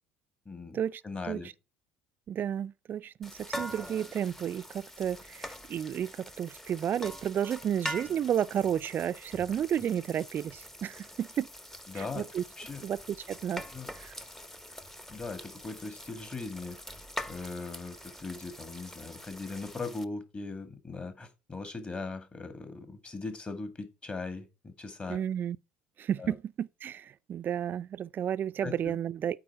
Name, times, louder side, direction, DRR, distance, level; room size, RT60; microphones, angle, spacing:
voice 1, 0.5-1.5 11.9-12.3 12.6-12.8 13.7-13.9 15.1-16.8 17.3-25.2 26.2-26.3 28.6-28.9, left 3 dB, 25° left, 2.0 m, -39 dB
voice 2, 2.3-11.5 11.9-12.4 12.8-13.6 14.0-14.2 25.1-25.6 26.0-29.4, right 9 dB, 40° right, 0.4 m, -32 dB
sound 1, 3.2-20.0, equal, 5° left, 0.8 m, -44 dB
8.8 x 4.0 x 6.1 m
hypercardioid pair, 65°, 5 cm